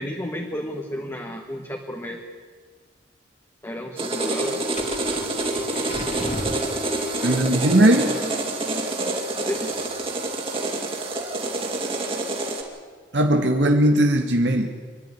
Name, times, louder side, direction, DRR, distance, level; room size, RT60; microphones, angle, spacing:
voice 1, 0.0-2.2 3.6-4.6 7.1-7.7 8.2-8.7 9.4-9.9, equal, 15° left, 2 dB, 1.5 m, -33 dB
sound 1, 4.0-12.6, right 2 dB, 30° right, 2.9 m, -27 dB
sound 2, 4.5-7.3, left 1 dB, 40° left, 2.1 m, -34 dB
voice 2, 7.2-8.1 13.1-14.7, right 1 dB, 80° right, 3 dB, 1.7 m, -18 dB
26.0 x 11.0 x 9.8 m, 1.5 s
head